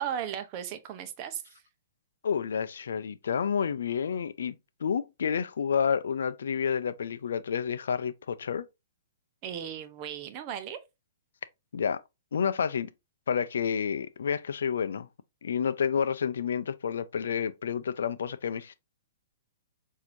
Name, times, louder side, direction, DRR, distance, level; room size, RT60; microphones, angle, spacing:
voice 1, 0.0-1.4 9.4-10.8, right 9 dB, 40° right, 0.8 m, -36 dB
voice 2, 2.2-4.5 4.8-8.7 11.7-12.0 12.3-12.9 13.3-15.1 15.4-18.7, left 7 dB, 75° left, 0.4 m, -29 dB
6.0 x 2.8 x 2.6 m
hypercardioid pair, 130°, 0 cm